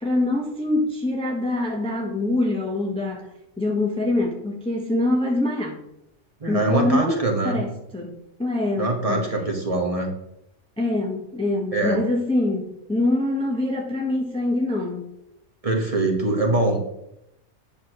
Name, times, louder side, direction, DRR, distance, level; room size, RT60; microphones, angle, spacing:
voice 1, 0.0-3.3 3.6-5.8 6.5-9.3 10.8-15.1, left 2 dB, 5° left, 0.8 m, -24 dB
voice 2, 6.4-7.6 8.8-10.1 11.7-12.0 15.6-16.8, right 2 dB, 30° right, 1.2 m, -23 dB
8.6 x 6.3 x 3.0 m
omnidirectional pair, 1.3 m